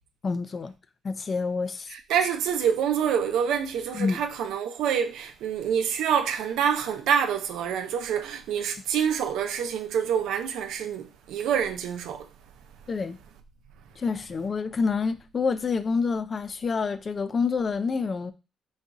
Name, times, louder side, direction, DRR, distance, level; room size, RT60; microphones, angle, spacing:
voice 1, 0.2-0.7 1.0-1.9 3.9-4.2 12.9-13.2 14.0-18.3, left 5 dB, 40° left, 0.5 m, -27 dB
voice 2, 1.9-12.3, right 8 dB, 85° right, 0.6 m, -26 dB
4.1 x 2.6 x 4.6 m
cardioid pair, 90°, 0 cm